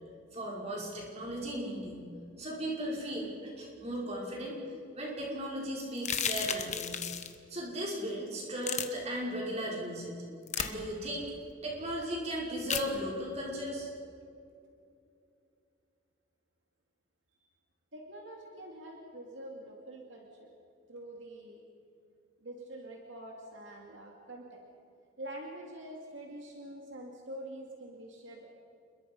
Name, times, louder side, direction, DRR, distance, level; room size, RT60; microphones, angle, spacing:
voice 1, 0.3-2.1 2.4-4.6 5.0-7.0 7.5-10.2 10.6-11.3 11.6-13.9, equal, 30° right, -3 dB, 5.6 m, -36 dB
sound 1, 6.0-7.3 8.6-8.8 10.5-10.7 12.7-12.9, left 8 dB, 35° left, 1.3 m, -33 dB
voice 2, 17.9-20.5 20.9-21.6 22.4-24.6 25.2-28.5, right 1 dB, 65° right, 0 dB, 2.6 m, -46 dB
29.0 x 22.0 x 5.5 m, 2.5 s
head